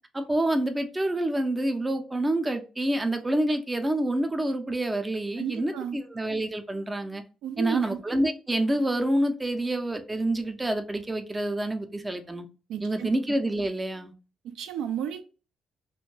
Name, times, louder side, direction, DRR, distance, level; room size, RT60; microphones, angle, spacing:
voice 1, 0.1-7.2 7.6-12.5 12.8-14.1, right 1 dB, 15° right, 0.5 m, -27 dB
voice 2, 5.4-6.0 7.4-8.0 12.7-13.1 14.4-15.2, right 9 dB, 85° right, 0.4 m, -32 dB
2.5 x 2.1 x 3.1 m
cardioid pair, 90°, 0 cm